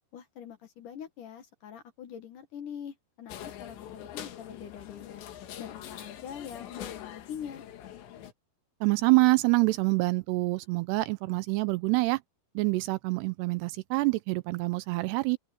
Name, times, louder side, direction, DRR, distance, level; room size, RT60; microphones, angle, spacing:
voice 1, 0.1-5.2 5.6-7.6, left 8 dB, 60° left, 2.5 m, -43 dB
sound 1, 3.3-8.3, left 10 dB, 80° left, 4.1 m, -44 dB
voice 2, 8.8-12.2 12.6-15.4, right 24 dB, 80° right, 2.5 m, -26 dB
open air
omnidirectional pair, 5.0 m